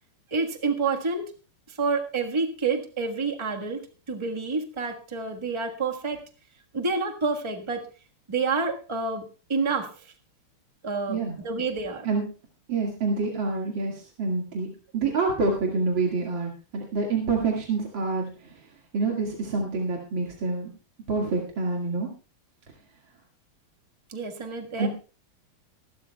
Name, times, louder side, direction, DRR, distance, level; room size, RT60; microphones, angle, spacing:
voice 1, 0.3-1.3 1.7-6.2 6.7-7.9 8.3-9.2 9.5-10.1 10.8-11.2 11.4-12.1 24.1-24.9, right 4 dB, 15° right, 2 dB, 1.2 m, -28 dB
voice 2, 12.7-14.7 14.9-20.7 21.1-22.1 24.8-24.9, right 3 dB, 60° right, -1 dB, 2.7 m, -27 dB
25.0 x 12.0 x 2.3 m, 0.35 s
omnidirectional pair, 2.4 m